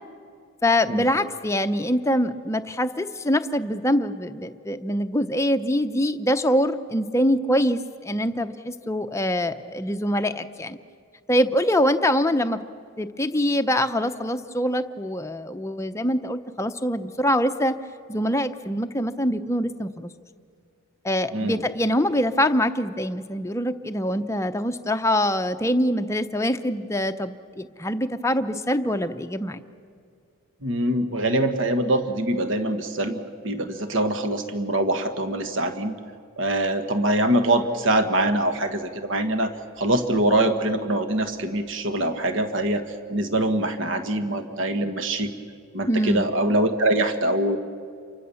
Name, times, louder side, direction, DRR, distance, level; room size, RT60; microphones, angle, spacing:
voice 1, 0.6-10.8 11.3-12.6 13.0-17.8 18.1-20.1 21.0-29.6 45.9-46.3, equal, 15° left, 8 dB, 0.7 m, -24 dB
voice 2, 30.6-35.9 36.4-42.8 43.1-45.3 45.7-47.6, right 1 dB, 60° right, 8 dB, 1.5 m, -24 dB
28.5 x 24.0 x 7.1 m, 2.2 s
head